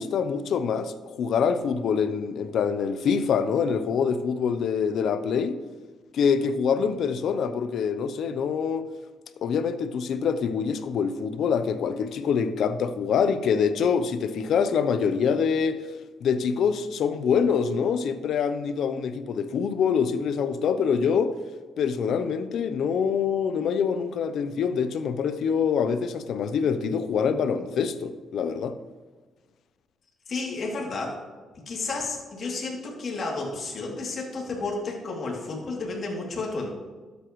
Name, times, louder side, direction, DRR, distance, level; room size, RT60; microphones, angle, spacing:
voice 1, 0.0-5.6 6.1-8.9 9.4-15.8 16.2-21.3 21.8-28.7, left 6 dB, 70° left, 0.6 m, -25 dB
voice 2, 30.3-31.2 31.7-36.8, left 3 dB, 50° left, 2.7 m, -32 dB
12.5 x 8.3 x 3.1 m
cardioid pair, 90°, 0 cm